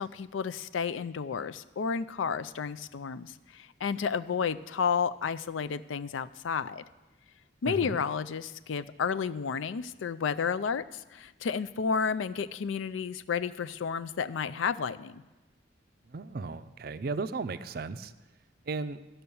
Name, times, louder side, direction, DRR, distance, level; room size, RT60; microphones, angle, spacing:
voice 1, 0.0-6.8 7.6-15.2, left 6 dB, 80° left, 14 dB, 0.4 m, -31 dB
voice 2, 7.7-8.0 16.1-18.1 18.7-19.0, right 4 dB, 50° right, 12 dB, 0.4 m, -35 dB
13.5 x 5.7 x 7.0 m, 1.2 s
head